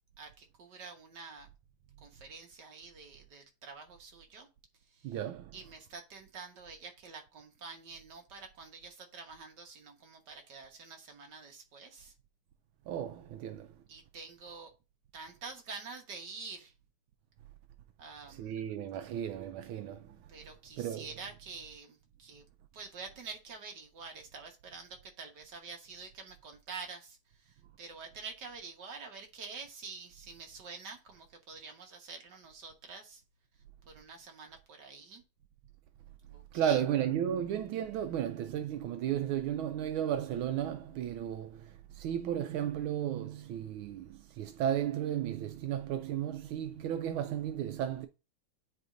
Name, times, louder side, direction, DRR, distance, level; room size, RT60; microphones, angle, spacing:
voice 1, 0.2-1.5 2.0-4.5 5.0-5.2 5.5-12.1 13.9-14.7 15.1-16.7 18.0-18.5 20.3-22.4 22.7-27.2 27.5-33.2 33.9-35.2 36.3-36.8, right 4 dB, 55° right, 1.9 m, -47 dB
voice 2, 5.0-5.6 12.9-13.7 18.3-20.2 20.8-21.1 36.5-48.1, right 10 dB, 80° right, 1.4 m, -34 dB
9.6 x 4.3 x 2.6 m
omnidirectional pair, 2.3 m